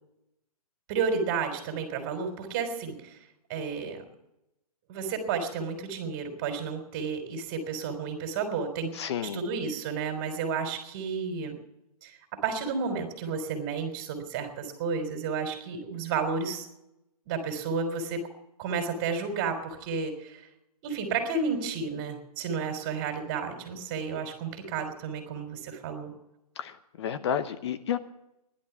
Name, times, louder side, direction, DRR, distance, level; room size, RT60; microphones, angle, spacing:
voice 1, 0.9-3.2 3.5-4.0 4.9-8.9 9.3-11.6 12.0-12.1 12.4-16.7 17.3-18.3 18.6-20.4 20.8-26.1, right 5 dB, 30° right, 6 dB, 3.7 m, -32 dB
voice 2, 8.9-9.4 26.6-28.0, left 8 dB, 45° left, 11 dB, 0.9 m, -31 dB
16.0 x 11.5 x 7.0 m, 0.87 s
hypercardioid pair, 155°, 20 cm